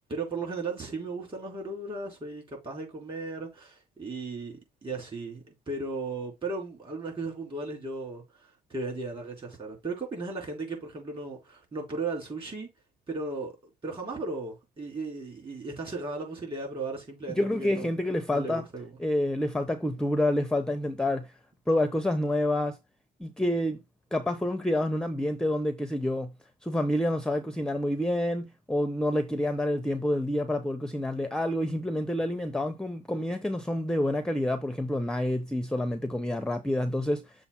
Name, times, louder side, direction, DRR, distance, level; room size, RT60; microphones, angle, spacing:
voice 1, 0.0-12.7 13.1-13.5 13.8-17.9 18.3-19.0, right 3 dB, 30° right, 4.0 m, -36 dB
voice 2, 17.4-18.6 19.0-21.3 21.7-22.8 23.2-23.8 24.1-26.3 26.6-37.3, left 1 dB, 5° left, 0.6 m, -28 dB
6.9 x 2.5 x 5.6 m
cardioid pair, 110°, 17 cm